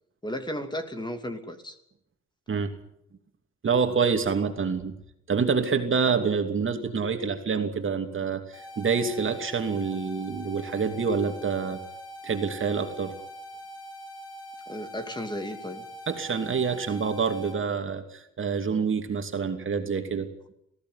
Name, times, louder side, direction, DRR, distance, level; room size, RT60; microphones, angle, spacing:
voice 1, 0.2-1.8 14.7-15.8, equal, 15° left, 7 dB, 2.7 m, -34 dB
voice 2, 3.6-4.9 5.3-11.8 12.2-13.1 16.1-20.3, right 5 dB, 40° right, 6 dB, 2.8 m, -27 dB
sound 1, 8.5-17.5, equal, 50° left, 7.3 m, -43 dB
19.5 x 15.5 x 9.7 m, 0.76 s
cardioid pair, 90°, 30 cm